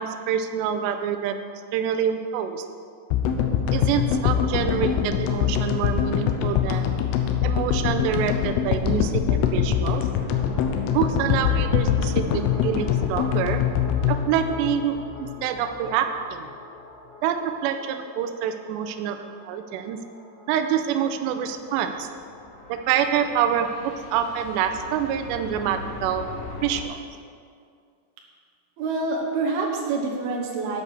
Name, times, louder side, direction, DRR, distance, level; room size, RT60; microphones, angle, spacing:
voice 1, 0.0-2.7 3.7-6.9 7.4-10.1 10.9-13.7 14.1-16.5 17.2-20.0 20.5-22.1 22.7-26.3 26.6-27.1, right 8 dB, 85° right, 7 dB, 2.5 m, -26 dB
sound 1, 3.1-15.4, left 8 dB, 90° left, 3.3 m, -23 dB
sound 2, 10.1-26.8, left 3 dB, 70° left, 1.8 m, -43 dB
voice 2, 28.8-30.8, right 3 dB, 70° right, 0 dB, 2.7 m, -26 dB
9.7 x 8.0 x 6.5 m, 2.2 s
omnidirectional pair, 5.6 m